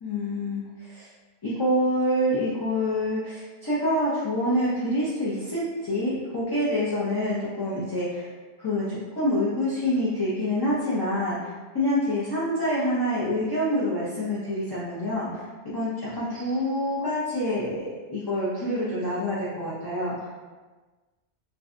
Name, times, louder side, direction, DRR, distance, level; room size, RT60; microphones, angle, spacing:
voice 1, 0.0-1.1 1.4-8.3 8.6-15.5 15.7-20.4, left 1 dB, 40° left, -10 dB, 0.3 m, -27 dB
2.6 x 2.1 x 2.4 m, 1.3 s
omnidirectional pair, 1.1 m